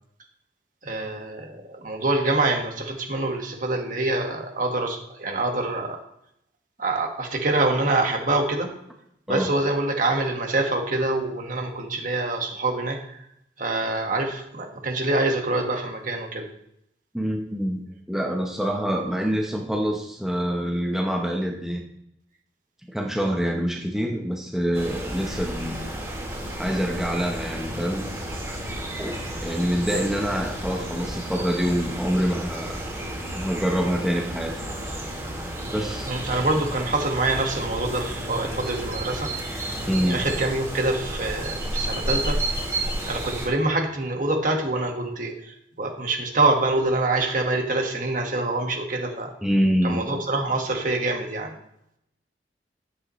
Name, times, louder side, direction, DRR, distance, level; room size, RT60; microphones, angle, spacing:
voice 1, 0.8-6.0 6.8-8.7 9.3-13.2 13.6-16.5 36.1-39.3 39.8-42.4 43.1-49.3 49.8-51.5, right 2 dB, 50° right, 2 dB, 1.7 m, -25 dB
voice 2, 17.1-17.8 18.1-21.8 22.9-25.8 26.6-28.1 29.0-29.1 29.4-32.8 33.3-34.5 35.7-36.1 39.9-40.2 49.4-50.0, equal, ahead, -1 dB, 1.0 m, -25 dB
sound 1, 24.7-43.5, right 1 dB, 20° right, 2.8 m, -32 dB
11.0 x 8.4 x 3.2 m, 0.78 s
head